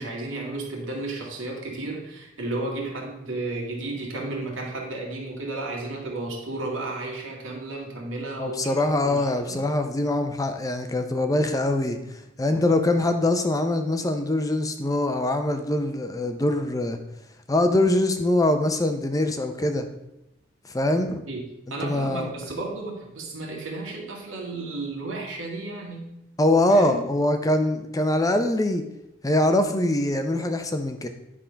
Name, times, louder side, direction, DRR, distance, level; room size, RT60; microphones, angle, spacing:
voice 1, 0.0-8.6 9.0-9.7 21.3-26.1 26.7-27.1, right 2 dB, 90° right, -1 dB, 2.1 m, -33 dB
voice 2, 8.4-12.0 12.4-17.0 17.5-19.9 20.7-21.2 21.8-22.3 26.4-28.8 29.2-31.1, left 1 dB, 20° left, 7 dB, 0.6 m, -23 dB
10.0 x 3.7 x 5.6 m, 0.88 s
head